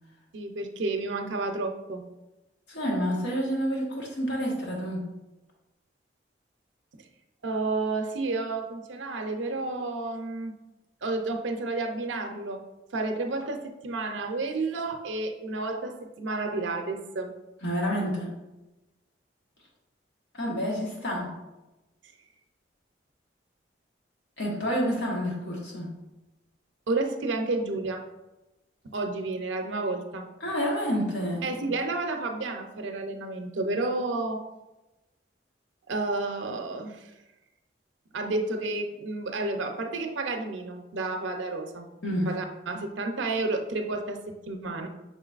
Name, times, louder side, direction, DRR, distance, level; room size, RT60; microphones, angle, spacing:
voice 1, 0.3-2.0 7.4-10.5 11.0-12.6 12.9-17.3 26.9-28.1 28.8-30.3 31.4-34.4 35.9-37.1 38.1-41.9 42.3-44.9, right 3 dB, 85° right, 5 dB, 0.6 m, -31 dB
voice 2, 2.7-5.1 17.6-18.3 20.3-21.4 24.4-26.0 30.4-31.4 42.0-42.3, equal, 70° left, -3 dB, 1.4 m, -29 dB
5.6 x 3.9 x 2.4 m, 1.0 s
head